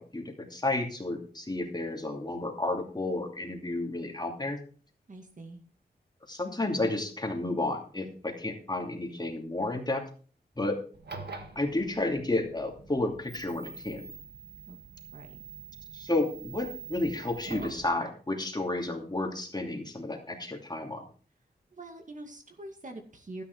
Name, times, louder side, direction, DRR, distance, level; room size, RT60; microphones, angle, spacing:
voice 1, 0.0-4.6 6.3-10.0 10.6-10.8 11.5-14.1 15.9-21.0, left 2 dB, 25° left, 2 dB, 2.6 m, -31 dB
voice 2, 5.1-5.6 14.7-14.8 15.1-15.4 21.7-23.4, right 2 dB, 50° right, 4 dB, 2.1 m, -44 dB
sound 1, 10.9-17.9, right 4 dB, 75° right, 1.7 m, -45 dB
12.5 x 9.6 x 4.7 m, 0.41 s
wide cardioid pair, 90°, 17 cm